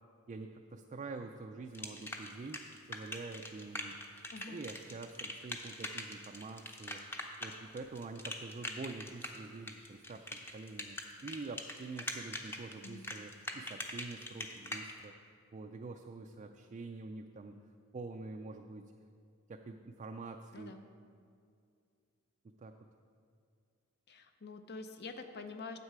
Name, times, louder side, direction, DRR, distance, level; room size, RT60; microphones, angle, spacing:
voice 1, 0.3-4.0 4.5-7.0 7.4-15.1 15.5-17.6 17.9-18.9 19.5-20.8 22.4-22.8, right 3 dB, 35° right, 4 dB, 0.3 m, -46 dB
sound 1, 1.7-14.9, left 1 dB, 10° left, 0.7 m, -42 dB
voice 2, 24.1-25.8, left 3 dB, 50° left, 7 dB, 0.6 m, -46 dB
9.6 x 7.5 x 4.7 m, 2.3 s
head